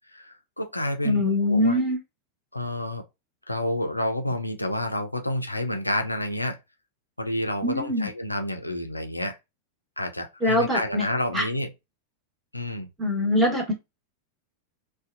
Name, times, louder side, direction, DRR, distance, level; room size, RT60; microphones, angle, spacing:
voice 1, 0.1-1.2 1.5-1.8 2.5-3.0 3.5-6.6 7.2-9.4 10.0-11.7 12.5-12.9, left 1 dB, 85° left, 0.4 m, -29 dB
voice 2, 1.0-2.0 7.6-8.1 10.4-11.0 11.3-11.5 13.0-13.7, left 1 dB, 5° right, 1.2 m, -23 dB
2.5 x 2.2 x 2.5 m
figure-of-eight pair, 90°, 0 cm